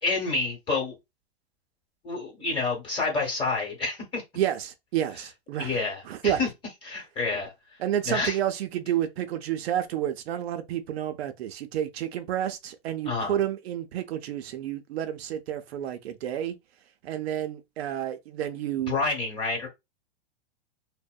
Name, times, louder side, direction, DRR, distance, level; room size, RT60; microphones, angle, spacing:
voice 1, 0.0-0.9 2.0-4.2 5.6-6.5 6.8-7.5 8.0-8.4 13.0-13.3 18.9-19.7, left 3 dB, 15° left, 1.0 m, -28 dB
voice 2, 4.4-5.8 6.1-6.4 7.8-16.6 17.0-18.9, right 11 dB, 75° right, 0.5 m, -30 dB
2.6 x 2.1 x 2.3 m
hypercardioid pair, 145°, 32 cm